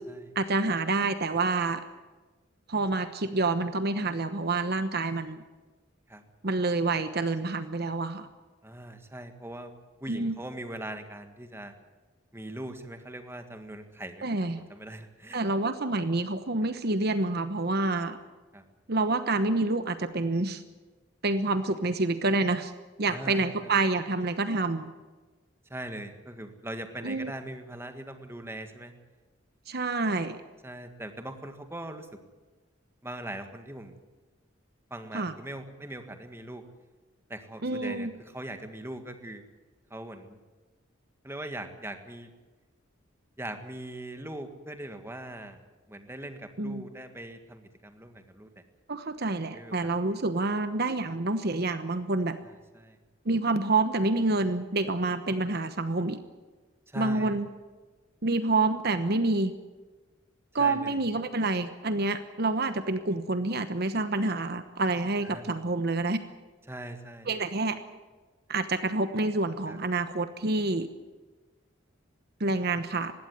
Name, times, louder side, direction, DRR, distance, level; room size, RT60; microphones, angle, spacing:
voice 1, 0.3-1.8 2.7-5.4 6.4-8.3 10.1-10.3 14.2-14.6 15.3-18.2 18.9-20.6 21.2-22.7 23.0-24.9 27.0-27.3 29.7-30.4 35.1-35.3 37.6-38.1 46.6-46.8 48.9-52.4 53.2-56.2 56.9-57.5 58.2-59.5 60.5-66.2 67.3-67.8 68.5-70.9 72.4-73.1, right 2 dB, 55° right, 10 dB, 1.1 m, -28 dB
voice 2, 8.6-9.7 10.0-11.7 12.3-14.3 14.6-15.4 18.5-18.6 23.1-23.7 25.7-28.9 30.6-32.2 33.0-33.9 34.9-36.6 37.3-39.4 39.9-40.4 41.2-42.3 43.4-45.6 45.9-48.6 49.5-49.9 52.7-53.0 56.9-57.4 60.6-61.0 65.2-65.5 66.7-67.3 69.7-69.8, right 1 dB, 15° right, 7 dB, 1.8 m, -41 dB
20.5 x 16.5 x 9.4 m, 1.3 s
head